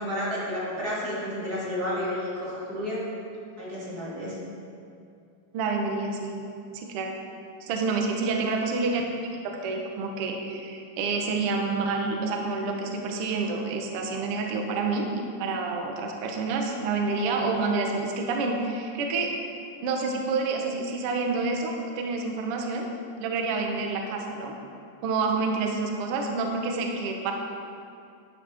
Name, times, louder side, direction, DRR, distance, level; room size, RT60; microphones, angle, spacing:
voice 1, 0.0-3.0 3.6-4.4, equal, 30° right, -8 dB, 2.4 m, -31 dB
voice 2, 5.5-6.4 6.7-7.1 7.6-9.0 9.6-19.3 19.8-22.9 23.2-24.5 25.0-27.3, right 3 dB, 80° right, 2 dB, 1.2 m, -28 dB
11.0 x 9.9 x 3.5 m, 2.5 s
omnidirectional pair, 4.0 m